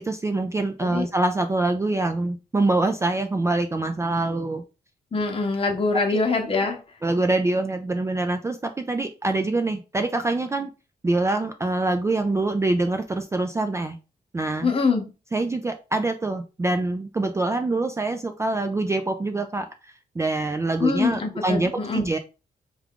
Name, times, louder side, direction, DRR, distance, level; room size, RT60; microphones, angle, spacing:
voice 1, 0.0-4.6 6.1-6.2 7.0-10.7 11.0-14.0 14.3-14.7 15.3-19.7 20.2-22.2, right 2 dB, 20° right, 6 dB, 0.3 m, -25 dB
voice 2, 5.1-6.8 14.6-15.1 20.8-22.1, left 4 dB, 35° left, 3 dB, 0.9 m, -24 dB
3.4 x 2.4 x 3.6 m, 0.31 s
cardioid pair, 105°, 16 cm